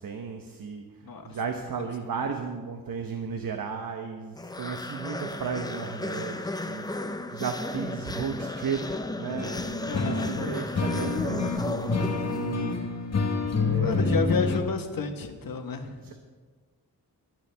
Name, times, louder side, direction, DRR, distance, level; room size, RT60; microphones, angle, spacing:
voice 1, 0.0-0.9 1.2-9.7 10.0-13.0 13.6-14.3 16.0-16.1, right 6 dB, 70° right, 4 dB, 1.1 m, -34 dB
voice 2, 1.0-1.4 9.9-10.3 13.7-15.9, left 5 dB, 75° left, 5 dB, 1.5 m, -31 dB
sound 1, 4.4-12.8, left 2 dB, 10° left, 0.5 m, -35 dB
sound 2, 9.3-14.6, left 4 dB, 45° left, 1.3 m, -28 dB
22.0 x 11.0 x 3.5 m, 1.4 s
wide cardioid pair, 175°, 35 cm